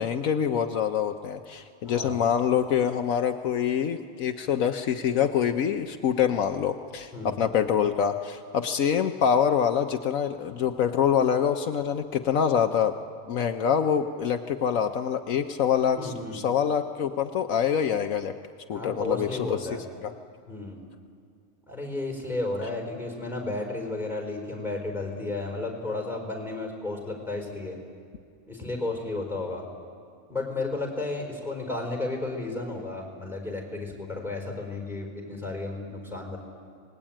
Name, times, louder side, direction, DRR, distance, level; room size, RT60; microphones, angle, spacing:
voice 1, 0.0-12.9 13.3-18.3 18.7-19.6 20.0-20.1, left 8 dB, 75° left, 6 dB, 1.2 m, -25 dB
voice 2, 1.8-2.2 7.1-7.4 16.0-16.4 18.7-19.8 20.5-20.8 21.7-27.8 28.5-29.6 30.3-36.4, left 2 dB, ahead, 2 dB, 4.6 m, -33 dB
26.0 x 20.0 x 8.9 m, 2.3 s
omnidirectional pair, 1.5 m